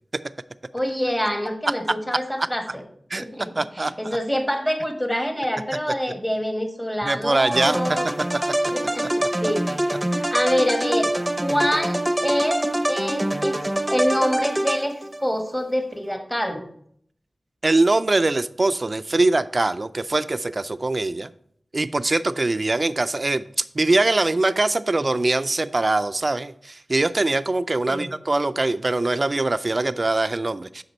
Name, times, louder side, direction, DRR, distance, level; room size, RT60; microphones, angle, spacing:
voice 1, 0.7-2.8 3.1-8.1 8.7-11.1 11.4-16.7 27.9-28.1, equal, 10° left, 5 dB, 1.4 m, -26 dB
voice 2, 3.5-3.9 7.0-7.8 17.6-21.3 21.7-23.4 23.7-30.8, right 2 dB, 45° right, 13 dB, 0.4 m, -22 dB
sound 1, 7.5-15.2, right 1 dB, 15° right, 0.7 m, -25 dB
8.0 x 5.8 x 4.3 m, 0.65 s
wide cardioid pair, 60°, 0 cm